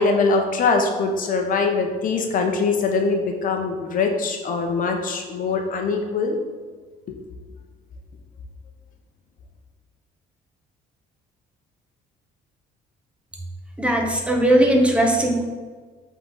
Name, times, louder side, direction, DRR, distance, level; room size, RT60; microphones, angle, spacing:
voice 1, 0.0-6.4 7.1-7.2, left 4 dB, 55° left, 3 dB, 0.9 m, -22 dB
voice 2, 13.8-15.4, right 1 dB, 5° right, 0 dB, 1.1 m, -18 dB
7.7 x 4.0 x 3.9 m, 1.5 s
cardioid pair, 110°, 17 cm